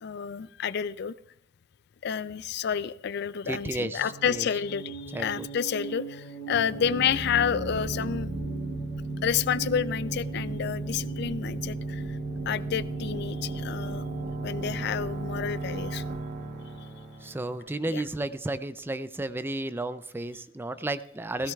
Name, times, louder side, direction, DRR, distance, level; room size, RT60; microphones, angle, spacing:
voice 1, 0.0-1.1 2.0-8.3 9.2-12.2 12.5-14.0 14.4-16.0 17.8-18.0 21.4-21.5, left 8 dB, 55° left, 17 dB, 0.4 m, -30 dB
voice 2, 3.5-4.5 5.1-5.5 17.2-21.5, right 2 dB, 10° right, 13 dB, 0.4 m, -33 dB
sound 1, 4.0-16.0, right 6 dB, 40° left, 2.1 m, -43 dB
sound 2, 6.5-18.1, right 2 dB, 55° right, 1.2 m, -35 dB
16.0 x 16.0 x 2.4 m, 0.81 s
head